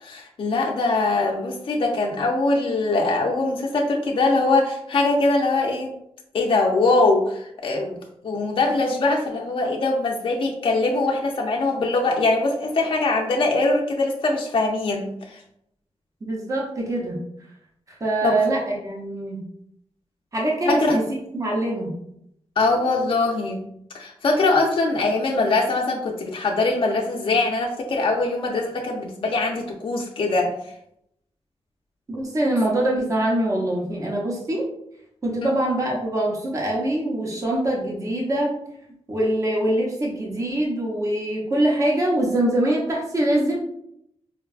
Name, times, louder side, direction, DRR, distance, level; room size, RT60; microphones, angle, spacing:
voice 1, 0.0-5.9 6.3-8.0 8.2-15.4 18.2-18.4 20.7-21.0 22.6-23.6 23.9-30.5 35.4-35.6, left 2 dB, 50° left, 0 dB, 0.4 m, -22 dB
voice 2, 16.2-17.2 18.0-19.4 20.3-21.0 21.3-21.9 32.1-34.6 35.2-38.6 39.1-43.6, right 1 dB, 30° right, -3 dB, 0.6 m, -23 dB
4.5 x 2.2 x 2.3 m, 0.76 s
wide cardioid pair, 170°, 11 cm